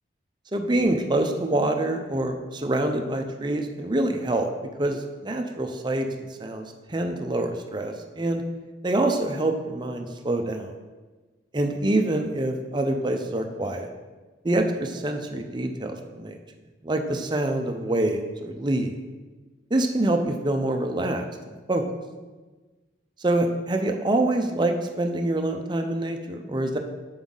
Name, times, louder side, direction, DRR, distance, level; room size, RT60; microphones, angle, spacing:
voice 1, 0.5-4.5 4.8-8.4 8.8-10.7 11.5-13.9 14.4-16.4 16.8-18.9 19.7-21.3 21.7-21.8 23.2-26.8, right 1 dB, 25° right, 5 dB, 0.5 m, -26 dB
7.0 x 5.6 x 3.8 m, 1.3 s
head